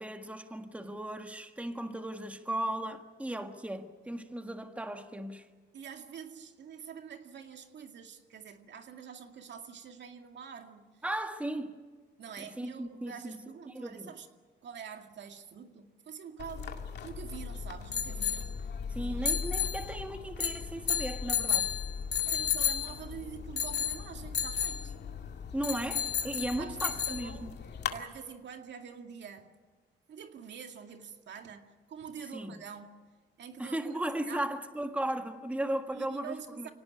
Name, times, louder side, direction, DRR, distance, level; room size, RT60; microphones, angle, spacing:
voice 1, 0.0-5.5 11.0-11.7 12.4-13.4 13.7-14.1 18.9-21.7 25.5-27.5 32.3-32.5 33.6-36.7, right 1 dB, 5° right, 1.6 m, -36 dB
voice 2, 5.7-11.0 12.2-14.3 14.6-16.8 17.0-18.5 19.0-19.7 21.5-21.6 22.2-24.9 25.7-25.8 26.6-27.5 27.9-29.5 30.1-32.9 33.4-34.0 34.3-34.5 35.9-36.7, right 7 dB, 65° right, 2.2 m, -46 dB
sound 1, 16.4-28.0, left 8 dB, 60° left, 2.2 m, -33 dB
24.5 x 18.0 x 9.8 m
cardioid pair, 90°, 20 cm